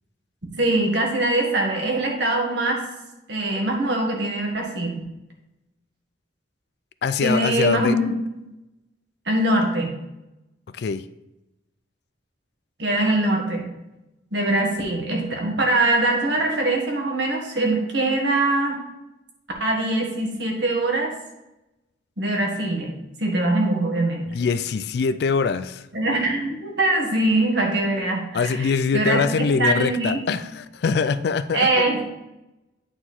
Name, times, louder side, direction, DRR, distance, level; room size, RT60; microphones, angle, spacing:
voice 1, 0.6-2.8 3.3-5.0 7.2-8.2 9.3-9.9 12.8-13.7 14.3-18.8 19.6-21.1 22.2-22.9 23.2-24.2 25.9-29.3 29.6-30.2 31.5-32.0, right 2 dB, 65° right, 1 dB, 1.7 m, -22 dB
voice 2, 7.0-8.0 10.7-11.0 24.3-25.8 28.3-31.8, left 5 dB, 60° left, 13 dB, 0.3 m, -23 dB
9.0 x 4.4 x 4.3 m, 0.93 s
head